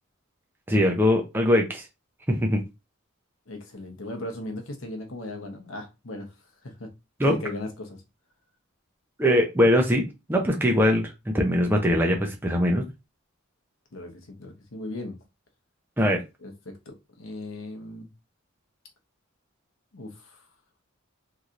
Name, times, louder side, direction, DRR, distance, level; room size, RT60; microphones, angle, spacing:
voice 1, 0.7-1.8 2.3-2.6 7.2-7.3 9.2-12.9 16.0-16.2, equal, 10° right, 0.5 m, -22 dB
voice 2, 3.5-6.3 6.6-6.9 7.2-8.0 13.9-15.2 16.4-18.1 19.9-20.4, left 1 dB, 65° left, 0.9 m, -37 dB
3.1 x 2.7 x 2.5 m
head